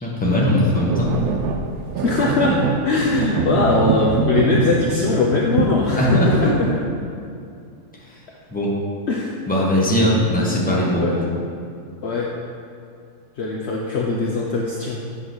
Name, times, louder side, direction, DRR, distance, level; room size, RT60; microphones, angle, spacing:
voice 1, 0.0-1.1 6.0-6.5 8.5-8.7 9.5-11.1, left 1 dB, 5° left, -5 dB, 1.2 m, -19 dB
sound 1, 0.7-5.3 5.6-6.8, right 5 dB, 80° right, 1.1 m, -23 dB
voice 2, 2.0-6.7 9.1-9.4 11.0-11.1 12.0-12.3 13.4-15.0, left 3 dB, 60° left, -2 dB, 0.8 m, -21 dB
8.0 x 3.9 x 6.2 m, 2.4 s
omnidirectional pair, 1.5 m